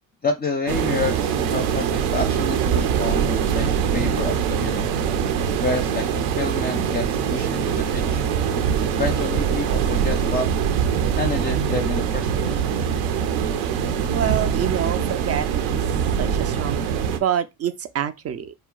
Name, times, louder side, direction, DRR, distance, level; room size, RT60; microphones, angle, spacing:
voice 1, 0.2-5.0 5.6-8.3 8.9-10.5 11.2-12.6, left 3 dB, 20° left, 0.5 m, -29 dB
sound 1, 0.7-17.2, right 7 dB, 80° right, 0.6 m, -23 dB
voice 2, 14.1-15.8 16.2-18.5, right 9 dB, 35° right, 0.4 m, -27 dB
2.2 x 2.0 x 3.7 m
hypercardioid pair, 60°, 42 cm